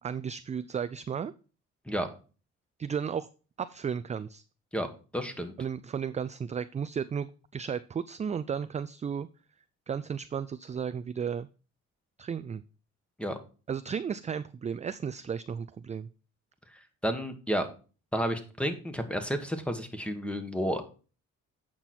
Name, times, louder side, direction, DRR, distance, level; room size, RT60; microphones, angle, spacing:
voice 1, 0.0-1.3 2.8-3.3 3.6-4.4 5.6-9.3 9.9-11.5 12.2-12.6 13.7-16.1, right 7 dB, 25° right, 13 dB, 0.3 m, -34 dB
voice 2, 5.1-5.5 13.2-13.4 17.0-17.7 18.1-20.8, equal, 5° left, 7 dB, 1.5 m, -31 dB
8.8 x 6.0 x 4.3 m, 0.36 s
cardioid pair, 90°, 30 cm